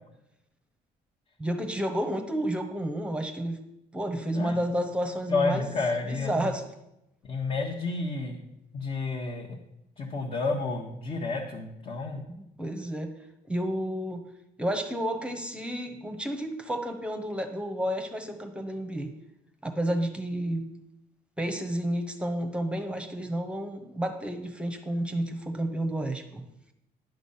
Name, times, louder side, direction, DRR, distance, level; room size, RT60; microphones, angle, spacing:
voice 1, 1.4-3.6 3.9-5.7 6.0-6.6 12.3-13.1 13.5-14.2 14.6-19.1 19.6-20.7 21.4-26.4, right 1 dB, 5° right, 5 dB, 1.0 m, -31 dB
voice 2, 5.3-6.5 7.2-8.4 8.7-9.6 10.0-12.2, left 3 dB, 35° left, -1 dB, 1.4 m, -30 dB
10.5 x 6.0 x 5.7 m, 0.85 s
cardioid pair, 110°, 17 cm